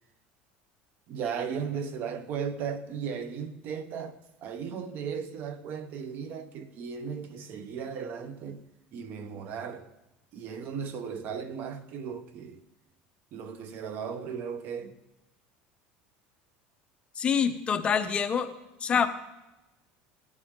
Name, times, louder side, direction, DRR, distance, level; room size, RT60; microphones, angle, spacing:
voice 1, 1.1-4.2 4.4-8.6 8.9-9.9 10.3-12.6 13.3-14.9, right 6 dB, 50° right, 1.0 m, -36 dB
voice 2, 17.2-18.5 18.8-19.1, left 7 dB, 25° left, 0.7 m, -26 dB
17.0 x 9.7 x 3.7 m
cardioid pair, 140°, 4 cm